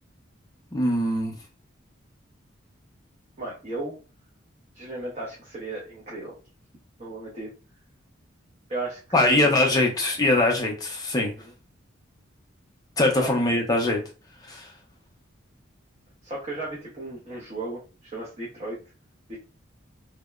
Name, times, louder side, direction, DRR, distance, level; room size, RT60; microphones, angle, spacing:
voice 1, 0.7-1.3 9.1-11.3 13.0-14.0 14.4-14.7, left 2 dB, 20° left, 1 dB, 0.5 m, -22 dB
voice 2, 3.4-4.0 4.7-6.4 7.0-7.6 8.7-9.5 11.2-11.4 13.2-13.3 16.2-18.8 19.3-19.4, right 2 dB, 30° right, -6 dB, 0.6 m, -35 dB
2.7 x 2.0 x 2.2 m, 0.34 s
head